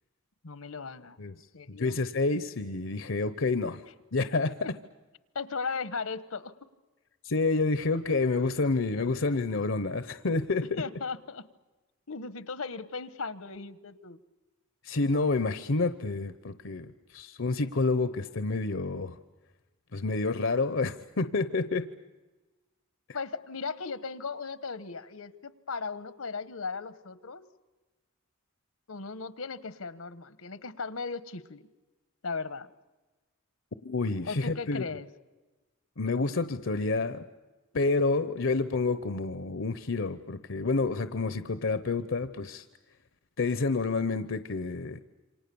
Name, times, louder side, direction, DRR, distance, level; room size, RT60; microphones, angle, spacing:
voice 1, 0.4-1.2 1.5-2.0 4.6-4.7 5.3-6.5 10.8-11.4 12.1-14.2 23.1-27.4 28.9-31.7 32.2-32.7 34.2-35.1, left 4 dB, 75° left, 15 dB, 1.1 m, -37 dB
voice 2, 1.7-3.8 4.1-4.5 7.2-10.6 14.8-19.2 19.9-21.8 33.8-34.8 36.0-37.2 37.7-42.6 43.4-45.0, left 3 dB, 60° left, 12 dB, 0.8 m, -29 dB
28.0 x 25.5 x 7.0 m, 1.2 s
head